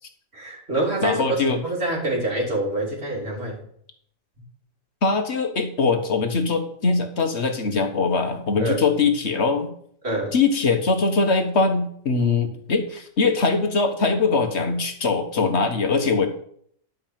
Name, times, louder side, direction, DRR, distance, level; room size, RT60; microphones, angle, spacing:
voice 1, 0.3-3.6 8.6-8.8 10.0-10.3, right 1 dB, 45° right, -2 dB, 3.1 m, -26 dB
voice 2, 1.0-1.6 5.0-9.7 10.3-16.3, left 4 dB, 50° left, 5 dB, 1.6 m, -22 dB
11.5 x 5.3 x 7.4 m, 0.64 s
omnidirectional pair, 1.5 m